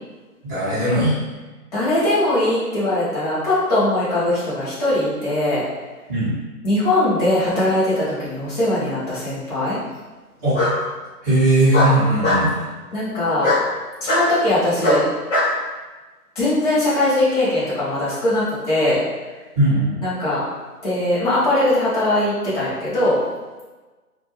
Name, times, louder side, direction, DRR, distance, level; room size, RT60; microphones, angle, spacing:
voice 1, 0.4-1.2 6.1-6.3 10.4-10.6 11.2-12.6 19.5-20.0, right 1 dB, 15° right, -14 dB, 0.7 m, -18 dB
voice 2, 1.7-5.6 6.6-9.8 12.9-13.5 14.0-15.0 16.4-19.0 20.0-20.4 20.8-23.2, left 1 dB, 25° left, -11 dB, 0.6 m, -20 dB
Bark, 8.4-9.0 10.5-10.8 11.7-12.5 13.4-13.6 14.1-14.3 14.8-15.5, left 1 dB, 50° left, 0.9 m, -19 dB
2.2 x 2.2 x 2.9 m, 1.2 s
figure-of-eight pair, 145°, 47 cm